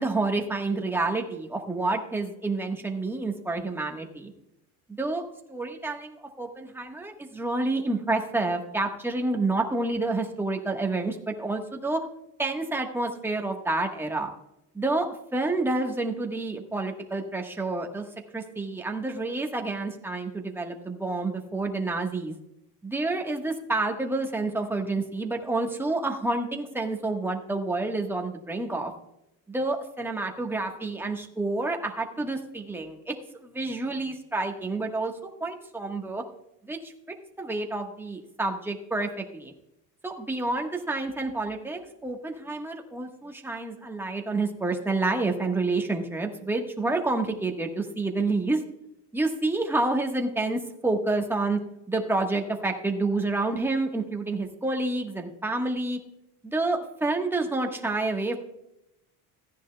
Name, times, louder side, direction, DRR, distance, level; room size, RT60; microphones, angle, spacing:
voice 1, 0.0-4.3 4.9-5.2 5.5-12.0 12.4-14.3 14.7-15.1 15.3-18.0 18.3-22.4 22.8-28.9 29.5-33.1 33.4-35.1 35.4-36.2 36.6-36.9 37.4-39.5 40.0-48.6 49.1-51.6 51.9-56.0 56.4-58.4, right 2 dB, 5° right, 2 dB, 1.2 m, -29 dB
15.0 x 10.0 x 2.2 m, 0.84 s
cardioid pair, 140°, 39 cm